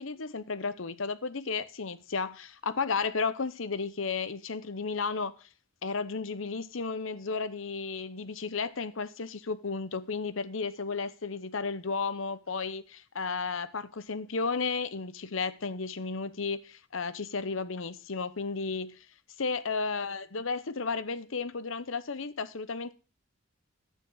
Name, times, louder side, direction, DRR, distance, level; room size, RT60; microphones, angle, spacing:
voice 1, 0.0-5.3 5.8-19.0 19.4-22.9, left 4 dB, 65° left, 0.9 m, -33 dB
12.0 x 9.2 x 4.0 m
head